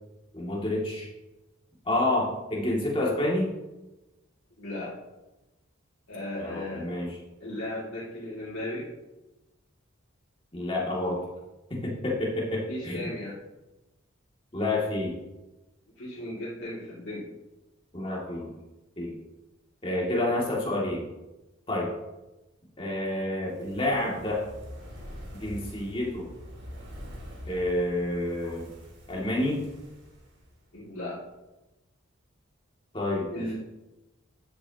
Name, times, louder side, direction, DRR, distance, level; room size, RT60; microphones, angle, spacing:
voice 1, 0.3-1.1 1.9-3.5 6.4-7.1 10.5-11.2 11.7-13.1 14.5-15.2 17.9-18.5 19.0-19.2 19.8-21.1 21.7-21.9 22.8-24.4 25.3-26.3 27.5-28.7 29.1-29.6 32.9-33.6, left 1 dB, 25° left, -3 dB, 2.4 m, -29 dB
voice 2, 4.6-5.0 6.1-6.9 7.4-8.9 12.7-13.4 16.0-17.3 30.7-31.2 33.3-33.6, left 1 dB, 70° left, -8 dB, 2.5 m, -36 dB
Fire, 23.4-30.8 31.1-31.2, equal, 55° right, 2.9 m, -45 dB
13.0 x 7.9 x 3.0 m, 1.0 s
head